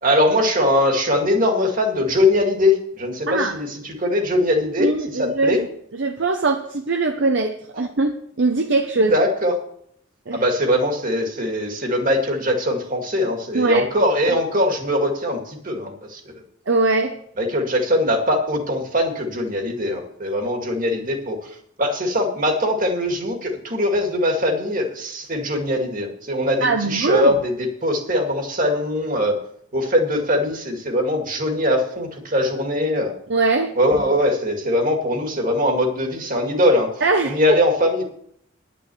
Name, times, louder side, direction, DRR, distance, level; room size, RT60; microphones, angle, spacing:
voice 1, 0.0-5.6 9.0-9.6 10.3-16.2 17.4-21.5 21.8-29.4 29.7-33.1 33.8-36.9 37.2-38.0, left 1 dB, 40° right, 3 dB, 2.1 m, -21 dB
voice 2, 3.3-3.6 4.8-5.7 6.0-9.1 10.3-10.4 13.5-13.9 16.7-17.2 26.6-27.4 33.3-33.7 37.0-37.4, right 3 dB, 60° right, 5 dB, 0.7 m, -21 dB
10.5 x 6.2 x 8.3 m, 0.69 s
head